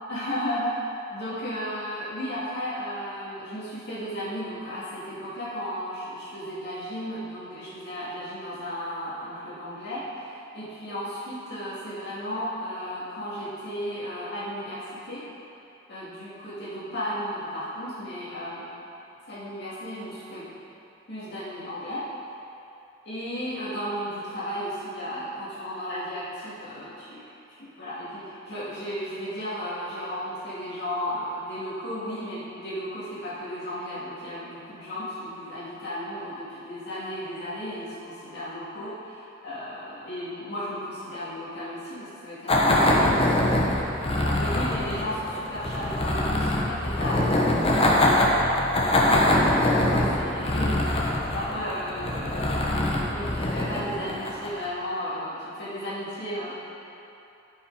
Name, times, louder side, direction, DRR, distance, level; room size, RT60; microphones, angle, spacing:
voice 1, 0.1-0.8 1.1-15.2 15.9-18.6 19.3-20.5 21.1-22.0 23.1-27.2 27.5-47.3 48.1-52.6 53.1-56.5, equal, 55° left, -10 dB, 2.5 m, -34 dB
sound 1, 42.5-54.7, left 1 dB, 30° left, 1.0 m, -23 dB
12.5 x 5.9 x 4.9 m, 2.8 s
head